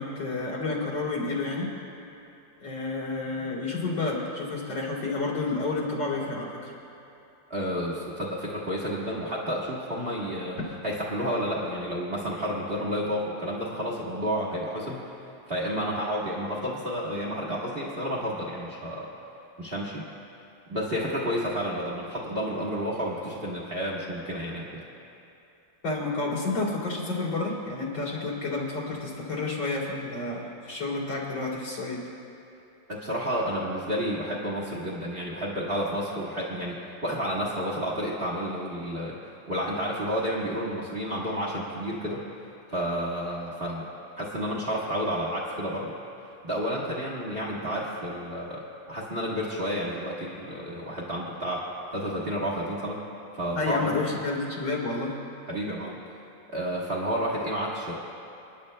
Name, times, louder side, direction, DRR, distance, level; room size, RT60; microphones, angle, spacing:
voice 1, 0.0-1.7 2.6-6.7 25.8-32.1 53.5-55.1, left 3 dB, 80° left, -6 dB, 3.7 m, -30 dB
voice 2, 7.5-10.6 10.8-15.1 15.5-19.1 19.6-20.1 20.7-24.8 32.9-36.8 37.0-39.2 39.5-42.2 42.7-43.8 44.2-45.9 46.4-51.6 51.9-53.0 53.3-54.1 55.5-56.0 56.5-57.9, equal, 35° right, -5 dB, 1.4 m, -30 dB
29.0 x 10.5 x 2.2 m, 2.8 s
omnidirectional pair, 2.2 m